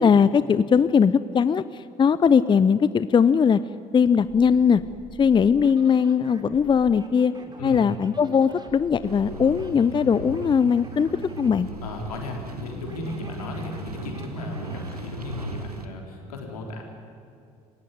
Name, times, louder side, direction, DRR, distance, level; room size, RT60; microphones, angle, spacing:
voice 1, 0.0-3.6 3.9-4.8 5.2-7.3 7.6-11.1 11.4-11.7, left 6 dB, 25° left, 16 dB, 0.6 m, -20 dB
sound 1, 4.2-15.1, right 2 dB, 20° right, 3.1 m, -45 dB
sound 2, 9.0-15.9, right 2 dB, 90° right, 1.2 m, -37 dB
voice 2, 11.8-16.8, left 2 dB, 75° left, 1 dB, 3.8 m, -35 dB
27.5 x 16.0 x 9.6 m, 2.5 s
figure-of-eight pair, 55°, 19 cm